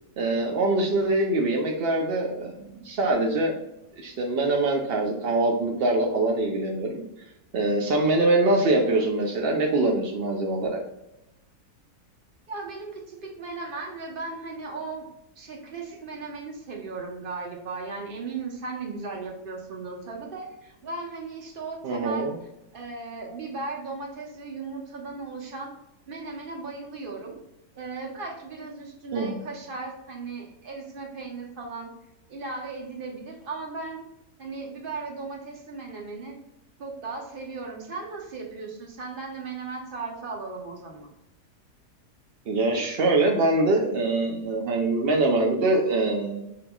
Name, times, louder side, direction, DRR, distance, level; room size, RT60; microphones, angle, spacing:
voice 1, 0.2-3.6 4.0-7.0 7.5-10.8 21.8-22.3 29.1-29.4 42.5-46.5, right 2 dB, 70° right, 0 dB, 0.5 m, -24 dB
voice 2, 12.5-15.0 15.4-25.7 26.1-27.4 27.8-31.9 32.3-34.0 34.4-36.4 36.8-41.1, right 3 dB, 45° right, 0 dB, 0.8 m, -36 dB
5.5 x 2.9 x 2.3 m, 0.88 s
omnidirectional pair, 1.7 m